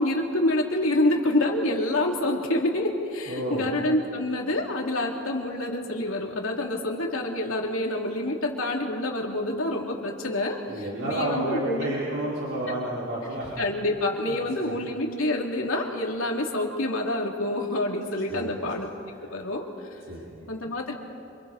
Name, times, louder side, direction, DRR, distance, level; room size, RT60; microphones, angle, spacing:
voice 1, 0.0-11.9 13.6-18.9 19.2-19.7 20.5-20.9, left 1 dB, 90° left, 0 dB, 2.9 m, -27 dB
voice 2, 3.3-3.7 10.7-13.5 14.2-14.7 18.3-18.5 20.1-20.2, right 1 dB, 70° right, -8 dB, 5.0 m, -31 dB
28.0 x 27.5 x 4.2 m, 2.7 s
head